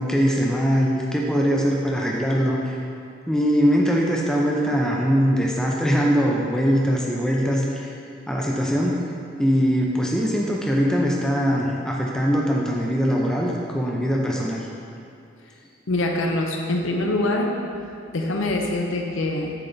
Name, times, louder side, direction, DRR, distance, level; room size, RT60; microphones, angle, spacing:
voice 1, 0.0-2.8 3.3-7.9 8.3-9.0 9.4-14.7, equal, 5° left, -2 dB, 0.4 m, -22 dB
voice 2, 15.9-17.6 18.1-19.5, left 2 dB, 75° left, 1 dB, 0.6 m, -24 dB
7.6 x 3.3 x 3.9 m, 2.4 s
head